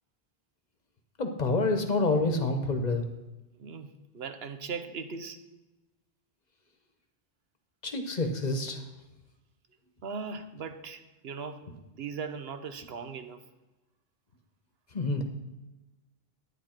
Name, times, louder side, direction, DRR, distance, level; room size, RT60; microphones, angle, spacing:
voice 1, 1.2-3.0 7.8-8.8 14.9-15.2, left 2 dB, 45° left, 5 dB, 1.1 m, -27 dB
voice 2, 3.6-5.4 10.0-11.7 11.9-13.4, right 5 dB, 75° right, 8 dB, 1.0 m, -39 dB
10.5 x 9.0 x 4.4 m, 1.1 s
omnidirectional pair, 1.0 m